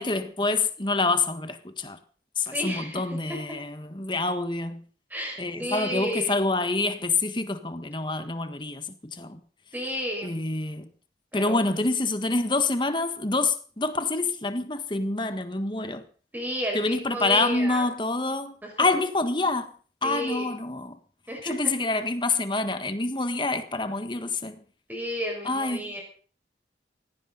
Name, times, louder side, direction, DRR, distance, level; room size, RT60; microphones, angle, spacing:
voice 1, 0.0-2.0 2.4-4.8 5.4-9.4 10.2-10.9 11.3-16.0 16.7-19.7 20.0-21.0 21.4-24.6 25.4-25.9, left 3 dB, 25° left, 1.6 m, -27 dB
voice 2, 2.5-3.4 5.1-6.3 9.7-10.4 11.3-11.5 16.3-17.9 18.6-18.9 20.0-20.5 21.3-21.5 24.9-26.0, equal, 10° right, 5.8 m, -32 dB
18.5 x 16.5 x 4.1 m
head